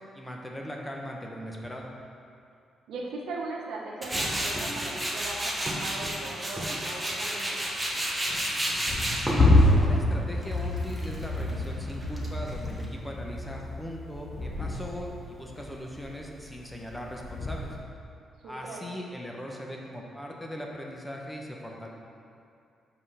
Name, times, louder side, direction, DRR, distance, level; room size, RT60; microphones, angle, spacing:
voice 1, 0.1-1.9 9.5-17.8 18.4-21.9, equal, 10° left, -1 dB, 1.0 m, -39 dB
voice 2, 2.9-7.6 18.4-18.8, right 2 dB, 80° right, -1 dB, 1.0 m, -38 dB
Tools, 4.0-12.8, right 1 dB, 10° right, 1.2 m, -31 dB
sound 1, 8.9-17.8, left 2 dB, 55° left, 1.3 m, -27 dB
5.4 x 5.0 x 5.6 m, 2.5 s
cardioid pair, 85°, 0 cm